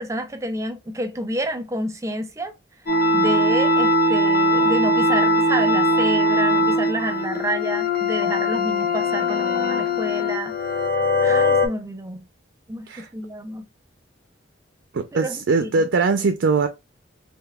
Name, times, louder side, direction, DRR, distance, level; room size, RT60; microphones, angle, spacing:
voice 1, 0.0-2.5 3.1-10.6 11.2-12.2 12.7-13.7 15.1-15.9, right 1 dB, 15° right, 0.5 m, -29 dB
sound 1, 2.9-11.7, left 1 dB, 55° left, 0.9 m, -20 dB
voice 2, 14.9-16.7, right 4 dB, 70° right, 0.4 m, -21 dB
3.5 x 2.7 x 2.2 m
head